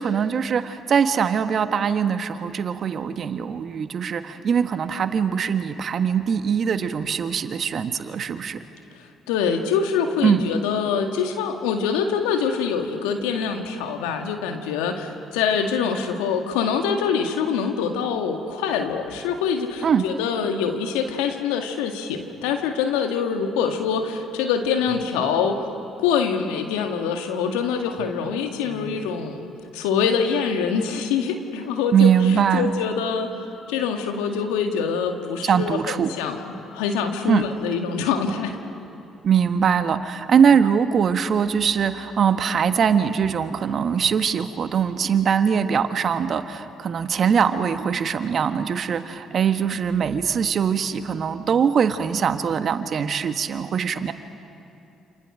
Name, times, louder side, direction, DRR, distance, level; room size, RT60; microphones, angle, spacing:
voice 1, 0.0-8.6 10.2-10.5 19.8-20.0 25.2-25.3 28.3-29.4 31.9-32.7 35.4-36.1 37.3-37.5 39.2-54.1, right 7 dB, 55° right, 9 dB, 1.4 m, -22 dB
voice 2, 9.3-25.6 26.0-32.1 32.5-33.3 33.7-36.4 36.7-38.6, left 6 dB, 80° left, 4 dB, 2.0 m, -24 dB
29.0 x 28.0 x 6.4 m, 2.7 s
hypercardioid pair, 50°, 0 cm